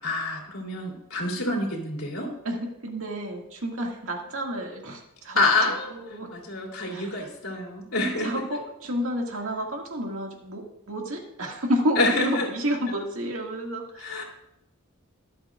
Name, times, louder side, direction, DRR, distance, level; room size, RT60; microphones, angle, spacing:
voice 1, 0.0-2.3 5.3-8.4 11.9-12.5 14.0-14.2, left 2 dB, 85° left, -1 dB, 3.2 m, -27 dB
voice 2, 2.4-5.4 5.9-6.3 6.9-7.3 8.2-14.2, equal, 80° right, 1 dB, 2.1 m, -30 dB
23.5 x 8.0 x 2.5 m, 0.83 s
head